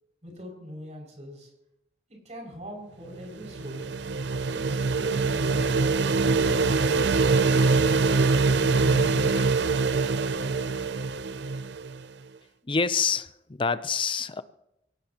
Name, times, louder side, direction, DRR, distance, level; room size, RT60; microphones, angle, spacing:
voice 1, 0.2-1.5 2.1-4.0 4.5-5.9, equal, 40° right, 0 dB, 6.3 m, -42 dB
sound 1, 3.2-12.0, right 4 dB, 70° right, 0.5 m, -24 dB
sound 2, 4.4-9.4, equal, 70° left, 3.9 m, -41 dB
voice 2, 12.7-14.4, left 5 dB, 30° left, 14 dB, 0.6 m, -27 dB
23.5 x 18.0 x 3.0 m, 0.87 s
head